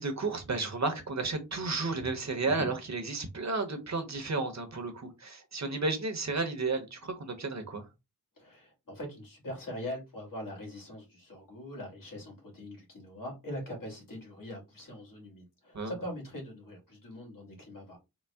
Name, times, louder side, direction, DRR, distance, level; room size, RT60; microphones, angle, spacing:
voice 1, 0.0-7.9 15.7-15.9, right 3 dB, 50° right, 0.9 m, -32 dB
voice 2, 2.4-2.7 8.4-18.0, left 1 dB, 70° left, 2.0 m, -42 dB
4.0 x 2.0 x 3.4 m
wide cardioid pair, 75°, 34 cm